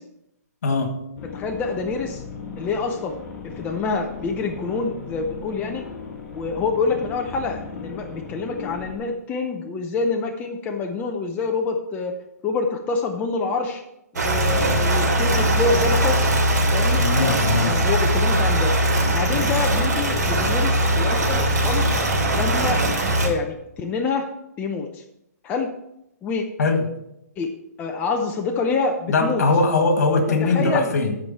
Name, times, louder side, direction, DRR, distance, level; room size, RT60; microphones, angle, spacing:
voice 1, 0.6-0.9 17.0-17.7 18.3-18.4 26.6-26.8 29.1-31.2, left 3 dB, 70° left, 5 dB, 1.9 m, -21 dB
sound 1, 1.2-9.0, left 5 dB, 35° left, 2.0 m, -37 dB
voice 2, 1.3-2.2 2.6-3.2 3.4-5.8 6.3-12.1 12.4-13.8 14.2-16.2 16.7-18.7 19.1-21.9 22.3-22.8 23.2-24.3 24.6-25.0 25.4-25.7 26.2-26.5 27.4-27.5 27.8-29.4 30.4-30.9, left 4 dB, 15° left, 3 dB, 0.6 m, -26 dB
sound 2, 14.2-23.3, right 1 dB, 85° right, 2.7 m, -20 dB
12.5 x 4.8 x 4.2 m, 0.82 s
hypercardioid pair, 150°, 9 cm